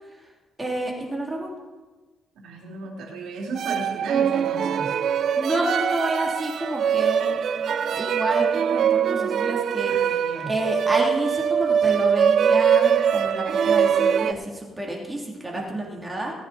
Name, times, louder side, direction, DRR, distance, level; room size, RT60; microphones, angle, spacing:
voice 1, 0.6-1.5 5.4-16.3, right 1 dB, 15° right, -1 dB, 3.3 m, -29 dB
voice 2, 2.4-5.0 9.9-10.5 15.5-15.9, right 3 dB, 85° right, -1 dB, 3.4 m, -35 dB
sound 1, 3.5-14.3, right 7 dB, 60° right, 0.5 m, -22 dB
19.0 x 9.5 x 4.3 m, 1.2 s
cardioid pair, 90°, 0 cm